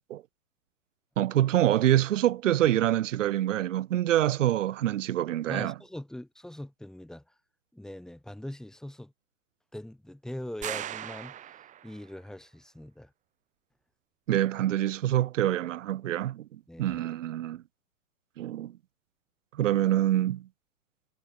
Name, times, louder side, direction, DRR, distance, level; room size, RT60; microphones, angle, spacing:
voice 1, 1.2-5.7 14.3-16.5 16.8-17.6 18.4-18.7 19.6-20.5, right 13 dB, 60° right, 1.4 m, -26 dB
voice 2, 5.5-7.2 7.7-9.1 9.7-11.3 11.8-13.1 16.7-17.0, left 1 dB, ahead, 3.7 m, -41 dB
sound 1, 10.6-12.1, right 11 dB, 20° right, 3.0 m, -38 dB
hypercardioid pair, 155°, 41 cm